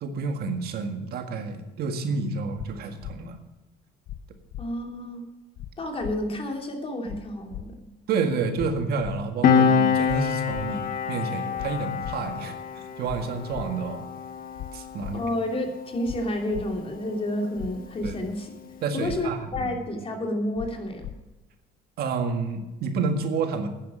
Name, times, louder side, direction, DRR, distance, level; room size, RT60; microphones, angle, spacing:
voice 1, 0.0-3.4 8.1-12.5 13.0-14.1 14.7-15.2 18.0-18.1 18.8-19.7 22.0-23.7, right 4 dB, 70° right, 6 dB, 1.8 m, -29 dB
sound 1, 2.6-2.7 3.0-3.1 4.1-4.2 4.5-4.6 5.6-5.7 6.0-6.1 7.1-7.2 7.5-7.6 8.6-8.7 9.0-9.2 10.1-10.2 10.5-10.7 11.6-11.7 12.0-12.1 13.1-13.2 13.5-13.7 14.6-14.7 15.0-15.1 16.1-16.2 16.5-16.6 17.6-17.7 18.0-18.1 19.1-19.2 19.5-19.6 20.6-20.7 21.0-21.1, left 13 dB, 75° left, 0.7 m, -37 dB
voice 2, 4.6-5.2 5.8-7.9 15.1-18.5 18.9-21.1, left 1 dB, 35° left, 3 dB, 2.9 m, -30 dB
Piano, 9.4-16.5 16.7-17.0, left 6 dB, 60° left, 1.2 m, -26 dB
10.0 x 10.0 x 6.2 m, 1.1 s
cardioid pair, 110°, 17 cm